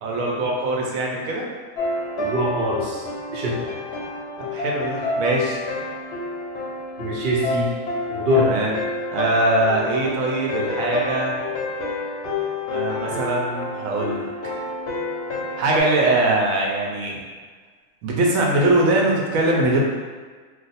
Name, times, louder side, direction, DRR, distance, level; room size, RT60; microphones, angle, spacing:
voice 1, 0.0-1.4 4.5-5.6 8.3-8.7 9.1-11.4 12.7-14.3 15.6-17.2 18.0-19.8, right 2 dB, 75° right, -2 dB, 1.0 m, -22 dB
sound 1, 1.8-15.8, left 2 dB, 60° left, 0.8 m, -29 dB
voice 2, 2.2-3.0 3.3-3.7 7.0-7.7 8.1-8.5, left 1 dB, 55° right, -4 dB, 0.8 m, -23 dB
2.5 x 2.4 x 4.0 m, 1.5 s
omnidirectional pair, 1.5 m